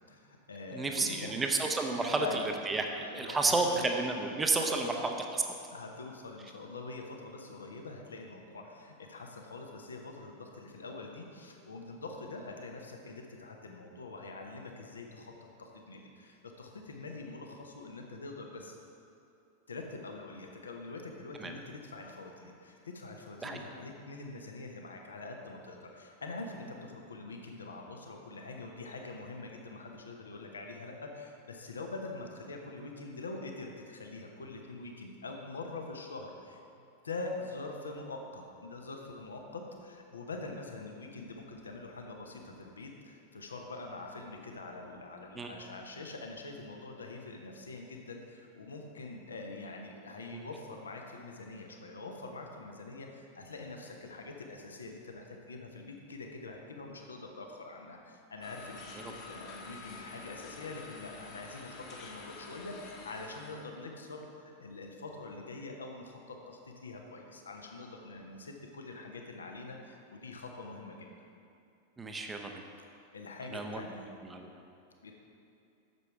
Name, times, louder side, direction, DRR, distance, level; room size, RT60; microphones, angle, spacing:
voice 1, 0.1-1.4 2.0-2.5 3.0-3.9 4.6-5.0 5.7-15.3 15.6-18.8 19.7-36.6 37.0-71.1 73.1-74.1 75.0-75.1, left 3 dB, 70° left, 2 dB, 0.9 m, -44 dB
voice 2, 0.7-5.6 21.4-21.6 23.4-23.6 45.4-45.5 50.3-50.4 72.0-72.5 73.5-73.8 74.3-74.5, right 3 dB, 15° right, 4 dB, 0.7 m, -31 dB
sound 1, 58.4-63.6, left 3 dB, 40° left, 1.3 m, -48 dB
8.1 x 7.1 x 4.7 m, 2.7 s
figure-of-eight pair, 90°, 0 cm